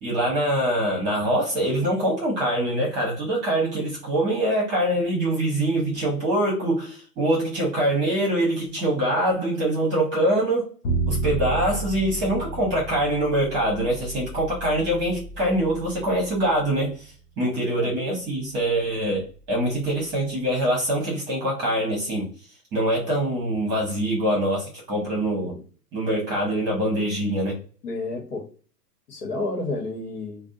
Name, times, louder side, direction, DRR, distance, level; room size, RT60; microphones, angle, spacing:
voice 1, 0.0-10.7 11.1-22.3 22.7-25.6 25.9-27.6, right 1 dB, 20° right, 0.8 m, -24 dB
Bowed string instrument, 10.8-17.0, right 3 dB, 30° left, 0.5 m, -32 dB
voice 2, 17.6-17.9 27.8-28.4 29.1-30.5, left 2 dB, 65° left, 1.2 m, -31 dB
2.6 x 2.1 x 2.6 m
hypercardioid pair, 120°, 49 cm